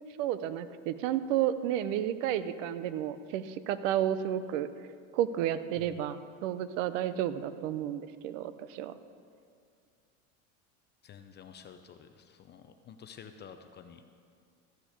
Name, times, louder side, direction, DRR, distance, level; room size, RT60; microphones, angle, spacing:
voice 1, 0.2-4.7 5.1-8.9, right 11 dB, 70° right, 13 dB, 0.8 m, -31 dB
voice 2, 11.0-14.0, left 7 dB, 25° left, 7 dB, 0.6 m, -50 dB
14.0 x 6.1 x 8.0 m, 2.2 s
supercardioid pair, 125°, 38 cm